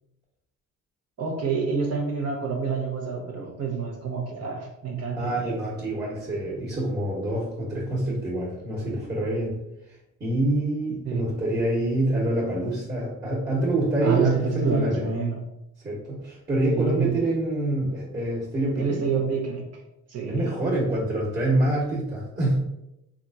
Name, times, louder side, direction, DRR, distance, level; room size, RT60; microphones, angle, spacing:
voice 1, 1.2-5.4 11.1-11.2 14.0-15.4 16.7-17.2 18.8-19.6 20.1-20.5, right 5 dB, 55° right, 0 dB, 0.8 m, -27 dB
voice 2, 5.1-9.6 9.9-15.1 15.8-19.0 20.3-22.6, right 1 dB, 30° right, -6 dB, 1.3 m, -26 dB
3.4 x 2.4 x 2.7 m, 0.88 s
cardioid pair, 90°, 30 cm